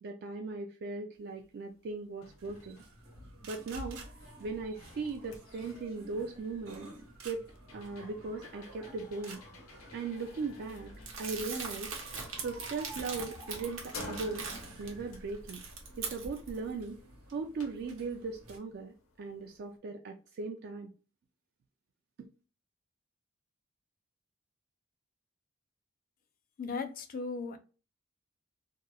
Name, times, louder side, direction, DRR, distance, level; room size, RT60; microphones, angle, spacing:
voice 1, 0.0-2.8 3.4-4.0 4.4-6.9 7.2-7.4 7.7-9.4 9.9-10.9 11.2-11.9 12.4-14.5 14.8-15.6 16.0-17.0 17.3-20.9, right 4 dB, 50° right, 0.3 m, -38 dB
sound 1, 1.4-1.5 1.9-19.8, left 3 dB, 85° left, 0.7 m, -53 dB
sound 2, 2.4-18.6, right 1 dB, 90° right, 1.0 m, -51 dB
Crumpling crinkling, 11.1-14.9 15.3-16.6, right 5 dB, 65° right, 0.8 m, -41 dB
voice 2, 26.6-27.6, left 4 dB, 45° left, 0.4 m, -36 dB
2.8 x 2.0 x 2.2 m
head